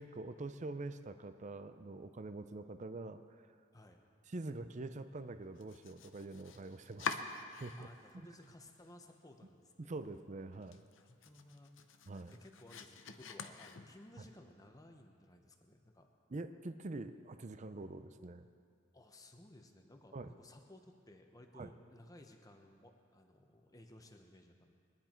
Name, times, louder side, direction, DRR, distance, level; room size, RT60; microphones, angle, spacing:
voice 1, 0.0-3.4 4.3-7.2 7.6-7.9 9.9-10.8 12.1-12.4 16.3-18.5 20.1-20.3 21.5-21.7, right 2 dB, 35° right, 10 dB, 0.5 m, -45 dB
Domestic sounds home sounds, 5.5-8.1 8.4-9.2 9.5-9.6 10.1-10.2 10.5-14.2, left 5 dB, 65° left, 0.7 m, -46 dB
voice 2, 7.8-10.0 11.0-12.0 12.3-16.1 18.9-24.7, left 1 dB, 20° left, 4 dB, 1.0 m, -58 dB
22.0 x 10.0 x 4.5 m, 2.2 s
head